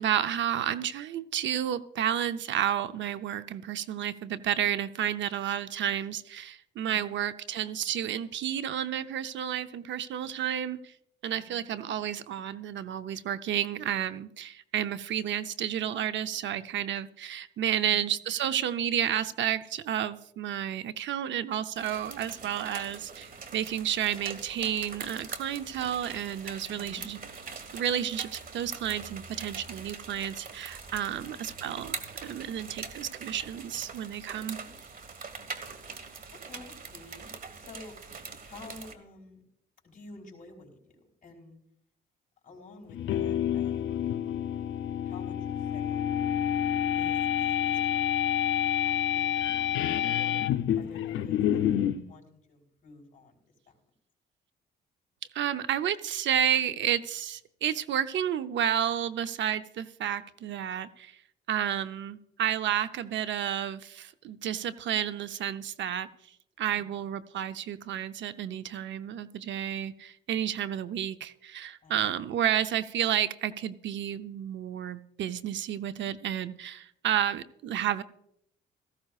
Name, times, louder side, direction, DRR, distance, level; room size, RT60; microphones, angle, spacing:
voice 1, 0.0-10.9 11.2-27.2 27.7-32.0 32.2-34.6 55.3-61.1 61.5-66.1 66.6-78.0, right 10 dB, 70° right, 12 dB, 0.7 m, -31 dB
voice 2, 11.3-11.9 17.8-18.1 26.7-27.0 31.1-31.5 34.5-34.7 36.3-37.3 37.6-38.0 38.4-39.4 39.8-40.9 41.2-41.6 42.4-44.0 45.0-46.2 46.9-50.4 50.7-53.4 53.7-53.8 66.7-66.9 71.8-72.4, left 2 dB, 40° left, 1 dB, 4.1 m, -51 dB
sound 1, 21.7-38.9, right 5 dB, 45° right, 1.5 m, -43 dB
sound 2, 42.9-52.0, left 10 dB, 80° left, 0.6 m, -28 dB
17.5 x 15.0 x 2.4 m, 0.74 s
cardioid pair, 90°, 20 cm